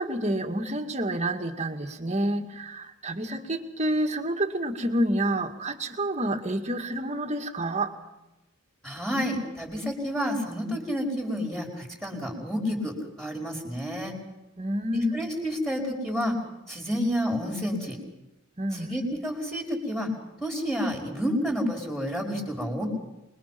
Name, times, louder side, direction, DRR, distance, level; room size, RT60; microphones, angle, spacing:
voice 1, 0.0-7.9 14.6-15.2 18.6-19.0, right 1 dB, 35° right, 4 dB, 2.2 m, -28 dB
voice 2, 8.8-14.1 14.9-16.3 16.7-18.0 18.7-20.1 20.4-22.9, equal, ahead, 0 dB, 5.7 m, -29 dB
26.5 x 22.0 x 6.0 m, 0.98 s
head